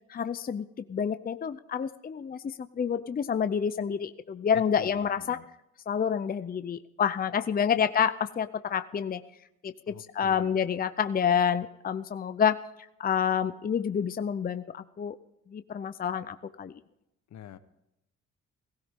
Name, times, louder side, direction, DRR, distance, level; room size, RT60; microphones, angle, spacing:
voice 1, 0.1-5.4 5.9-9.2 9.6-12.6 13.0-15.2 15.5-16.7, left 7 dB, 30° left, 11 dB, 0.6 m, -28 dB
voice 2, 4.5-5.5 7.7-7.9 9.9-10.6 17.3-17.6, left 10 dB, 65° left, 12 dB, 1.1 m, -46 dB
17.0 x 15.5 x 3.7 m, 0.85 s
cardioid pair, 90°, 30 cm